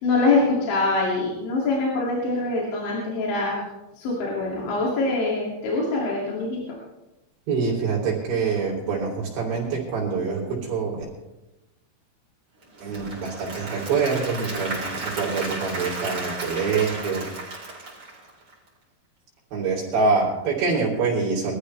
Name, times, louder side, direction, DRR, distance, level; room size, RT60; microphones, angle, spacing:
voice 1, 0.0-3.6 4.0-6.6, left 3 dB, 70° left, -4 dB, 4.8 m, -24 dB
voice 2, 7.5-11.0 12.8-17.2 19.5-21.5, right 4 dB, 65° right, -4 dB, 5.8 m, -25 dB
Applause / Crowd, 12.6-18.7, right 2 dB, 30° right, 4.5 m, -34 dB
24.0 x 13.5 x 3.4 m, 0.98 s
omnidirectional pair, 5.6 m